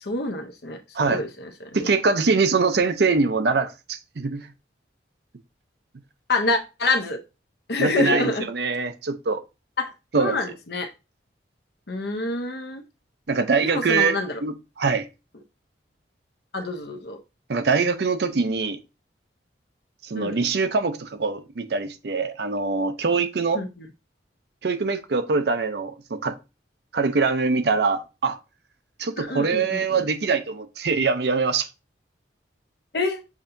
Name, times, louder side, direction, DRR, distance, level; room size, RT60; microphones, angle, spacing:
voice 1, 0.0-1.9 6.3-7.2 7.7-8.5 9.8-9.9 10.2-10.9 11.9-12.8 13.6-14.4 16.5-17.2 20.2-20.4 23.5-23.9 29.2-30.1 32.9-33.2, left 2 dB, 60° left, 0.7 m, -27 dB
voice 2, 1.7-4.5 7.8-9.4 10.1-10.4 13.3-15.1 17.5-18.8 20.0-23.6 24.6-26.3 26.9-28.4 29.0-31.7, right 4 dB, 60° right, 0.5 m, -23 dB
7.2 x 2.7 x 2.6 m
head